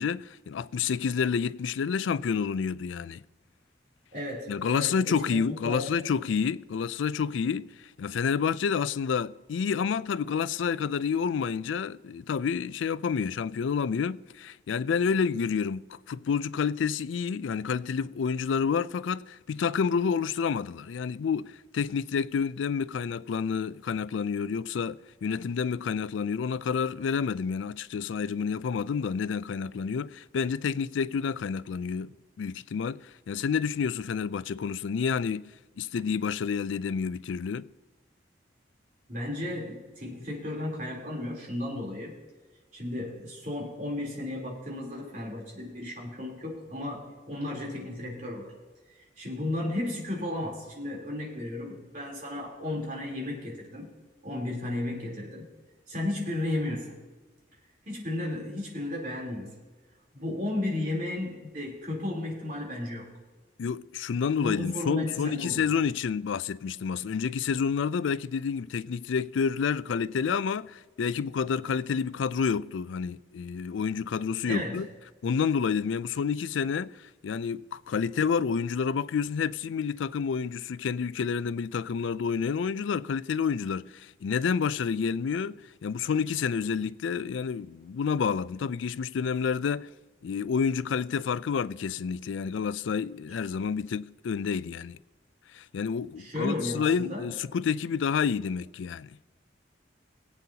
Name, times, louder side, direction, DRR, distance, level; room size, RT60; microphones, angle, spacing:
voice 1, 0.0-3.2 4.5-7.7 8.0-32.1 32.4-35.5 35.8-37.7 63.6-74.9 75.2-89.9 90.2-95.0 95.5-99.2, left 6 dB, 85° left, 0.4 m, -29 dB
voice 2, 4.1-5.8 39.1-42.1 42.7-48.5 48.9-53.9 54.2-55.5 55.9-56.9 57.9-59.5 60.1-63.1 64.4-65.7 74.5-74.8 96.2-97.3, left 1 dB, 45° right, 3.5 m, -34 dB
21.5 x 8.4 x 2.8 m
head